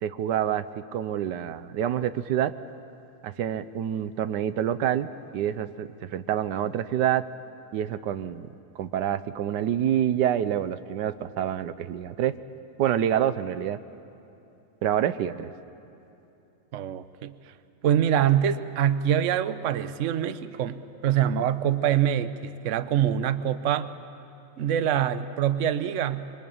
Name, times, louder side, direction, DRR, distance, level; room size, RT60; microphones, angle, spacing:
voice 1, 0.0-0.6 0.9-2.5 3.2-7.2 7.7-8.5 8.7-12.3 12.8-13.8 14.8-15.5, right 10 dB, 90° right, 13 dB, 1.4 m, -27 dB
voice 2, 16.7-17.4 17.8-23.9 24.6-26.3, right 10 dB, 55° right, 12 dB, 1.0 m, -25 dB
25.5 x 24.0 x 8.8 m, 2.9 s
omnidirectional pair, 1.8 m